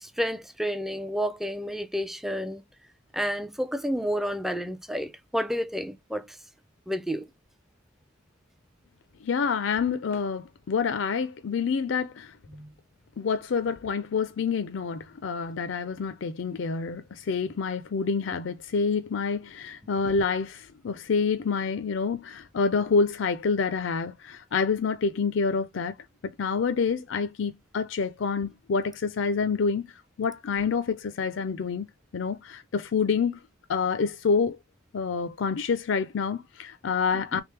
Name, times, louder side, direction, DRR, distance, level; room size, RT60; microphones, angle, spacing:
voice 1, 0.0-2.6 3.1-6.4 6.9-7.3 12.5-12.7 37.1-37.4, equal, ahead, 0.4 m, -30 dB
voice 2, 9.2-12.3 13.2-26.0 26.4-29.9 30.2-33.4 33.7-34.6 34.9-37.4, left 5 dB, 70° left, 0.4 m, -27 dB
3.5 x 3.4 x 3.1 m
head